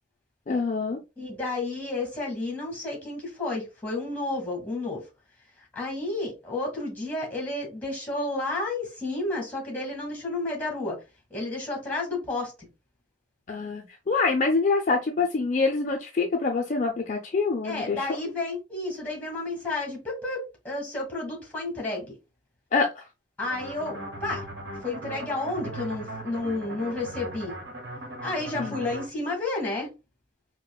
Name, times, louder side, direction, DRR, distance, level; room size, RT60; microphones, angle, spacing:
voice 1, 0.5-1.0 13.5-18.1 22.7-23.1 28.6-28.8, left 4 dB, 40° left, 0.4 m, -25 dB
voice 2, 1.2-5.0 5.7-11.0 11.3-12.5 17.6-22.1 23.4-24.5 24.8-27.5 28.2-29.9, left 2 dB, 10° left, 1.4 m, -31 dB
sound 1, 23.4-29.1, right 1 dB, 55° right, 1.1 m, -38 dB
4.6 x 2.1 x 2.3 m
head